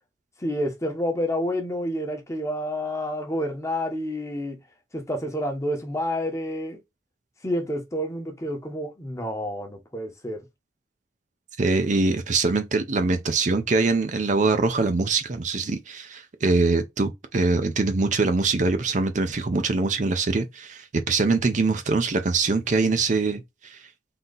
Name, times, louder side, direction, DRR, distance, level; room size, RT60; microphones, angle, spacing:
voice 1, 0.4-4.6 4.9-6.8 7.4-10.4, equal, 15° left, 1.0 m, -29 dB
voice 2, 11.6-23.8, right 3 dB, 40° right, 0.5 m, -23 dB
3.8 x 2.8 x 3.9 m
head